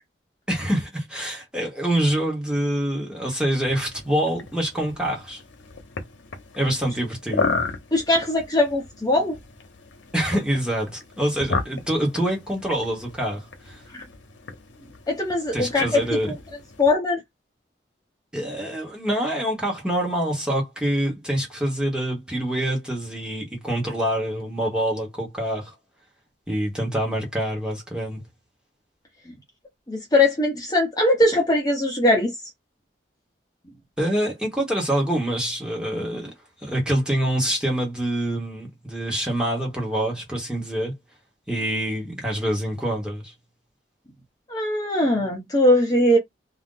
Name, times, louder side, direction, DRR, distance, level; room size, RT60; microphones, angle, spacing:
voice 1, 0.5-5.4 6.5-7.5 10.1-13.8 15.5-16.3 18.3-25.7 26.5-28.2 34.0-36.3 36.6-40.9 41.5-43.3, right 1 dB, 5° right, 1.0 m, -26 dB
sound 1, 3.5-16.9, left 4 dB, 90° left, 0.8 m, -34 dB
voice 2, 7.9-9.4 15.1-16.0 16.8-17.2 29.9-32.3 44.5-46.2, left 1 dB, 20° left, 0.8 m, -20 dB
2.5 x 2.1 x 3.7 m
head